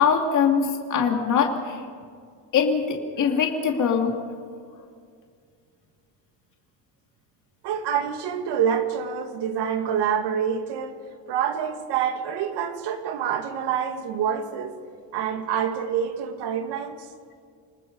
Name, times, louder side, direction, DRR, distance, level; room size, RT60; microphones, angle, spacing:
voice 1, 0.0-1.8 2.5-4.2, left 6 dB, 45° left, 2 dB, 2.6 m, -22 dB
voice 2, 7.6-11.0 11.3-14.8 15.1-17.1, right 8 dB, 75° right, 6 dB, 2.4 m, -27 dB
28.5 x 19.5 x 5.5 m, 2.1 s
cardioid pair, 175°, 41 cm